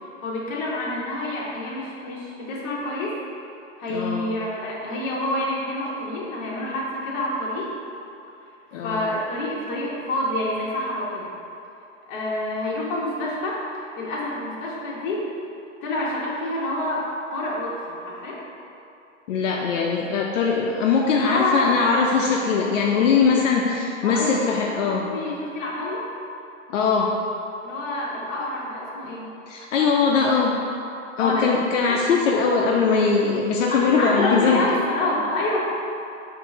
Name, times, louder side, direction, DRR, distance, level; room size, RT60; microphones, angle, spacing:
voice 1, 0.2-3.2 3.8-7.7 8.8-11.3 12.1-15.3 15.8-18.4 21.1-21.7 24.0-24.4 24.8-26.1 27.6-29.3 31.2-31.5 31.9-32.0 33.7-35.6, left 1 dB, 40° left, -5 dB, 1.1 m, -27 dB
voice 2, 3.9-4.2 8.7-9.1 19.3-25.1 26.7-27.1 29.5-30.6 31.2-34.6, left 5 dB, 80° left, -1 dB, 0.5 m, -21 dB
4.4 x 2.6 x 4.2 m, 2.7 s
hypercardioid pair, 135°, 37 cm